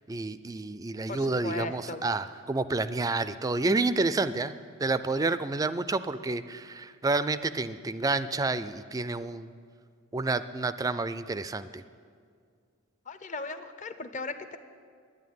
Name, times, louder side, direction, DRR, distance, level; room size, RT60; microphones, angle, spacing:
voice 1, 0.1-4.5 4.8-9.5 10.1-11.8, right 3 dB, 15° right, 13 dB, 0.3 m, -29 dB
voice 2, 1.1-2.0 13.1-14.6, left 3 dB, 35° left, 10 dB, 0.6 m, -37 dB
10.5 x 10.0 x 9.4 m, 2.1 s
head